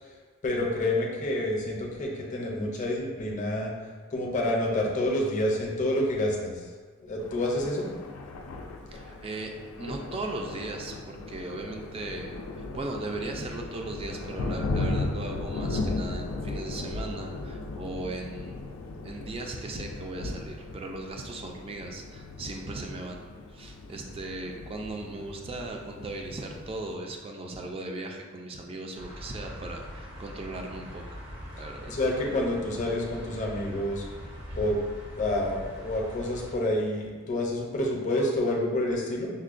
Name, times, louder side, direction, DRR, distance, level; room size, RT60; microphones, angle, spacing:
voice 1, 0.4-3.7 4.1-6.7 7.0-7.9 31.9-34.0 34.5-34.8 35.2-39.3, left 1 dB, 40° left, -1 dB, 0.6 m, -28 dB
Thunder, 7.2-26.9, left 2 dB, 90° left, 0.3 m, -36 dB
voice 2, 8.9-9.5 9.8-18.6 19.0-23.3 23.5-31.0 31.6-31.9, right 2 dB, 30° right, 2 dB, 0.3 m, -37 dB
sound 1, 28.9-36.6, equal, 60° right, 0.7 m, -42 dB
5.5 x 2.1 x 2.5 m, 1.5 s
head